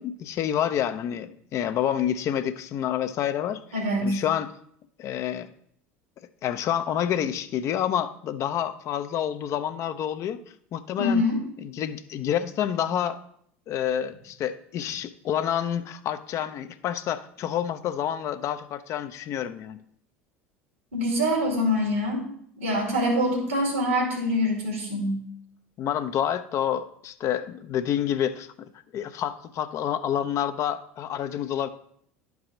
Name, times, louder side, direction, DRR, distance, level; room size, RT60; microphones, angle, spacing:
voice 1, 0.0-3.6 4.0-4.5 5.0-5.5 6.4-10.4 10.7-11.2 11.6-13.2 13.7-19.8 25.8-31.7, left 10 dB, 45° left, 11 dB, 0.5 m, -28 dB
voice 2, 3.7-4.2 11.0-11.4 20.9-22.3 22.6-25.2, left 1 dB, 85° right, 0 dB, 2.3 m, -24 dB
11.0 x 4.8 x 3.8 m, 0.66 s
hypercardioid pair, 70°, 7 cm